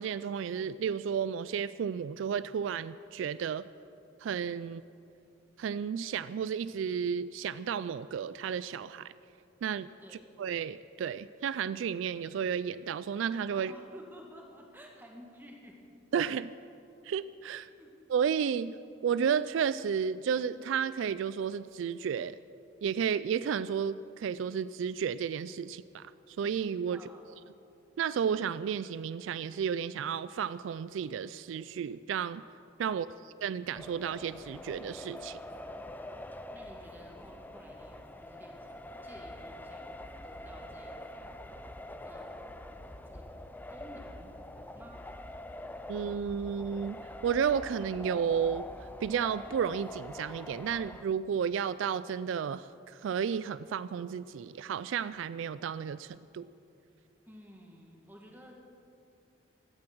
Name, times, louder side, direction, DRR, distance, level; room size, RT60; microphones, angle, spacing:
voice 1, 0.0-3.6 4.2-4.8 5.6-9.1 9.6-9.9 10.4-13.8 16.1-16.5 17.0-17.7 18.1-18.8 19.0-22.4 22.8-27.0 28.0-32.4 32.8-35.4 45.9-48.6 49.0-56.5, right 7 dB, 75° right, 16 dB, 0.3 m, -32 dB
voice 2, 13.5-15.9 17.8-17.9 26.9-27.3 32.9-33.3 36.5-38.7 39.0-39.9 40.2-41.3 42.1-43.3 43.7-44.4 44.7-45.0 57.3-58.6, equal, 10° right, 0 dB, 2.0 m, -53 dB
sound 1, 33.7-51.0, left 1 dB, 10° left, 0.5 m, -45 dB
sound 2, 39.1-47.7 48.0-49.6, equal, 90° left, 4.5 m, -54 dB
16.5 x 12.5 x 6.1 m, 2.7 s
head